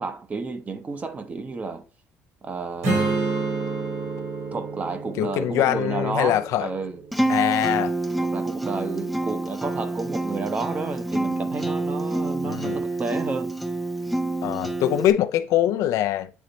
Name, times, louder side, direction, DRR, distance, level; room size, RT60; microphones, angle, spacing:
voice 1, 0.0-1.8 2.4-3.2 4.5-7.0 8.2-13.5, right 4 dB, 30° right, 0.8 m, -31 dB
Strum, 2.8-8.2, right 3 dB, 90° right, 3.2 m, -30 dB
voice 2, 5.2-6.7 7.3-7.9 12.4-12.8 14.4-16.3, left 12 dB, 80° left, 0.5 m, -23 dB
Acoustic guitar, 7.1-15.1, right 2 dB, ahead, 0.4 m, -27 dB
8.3 x 3.1 x 3.9 m
cardioid pair, 120°, 5 cm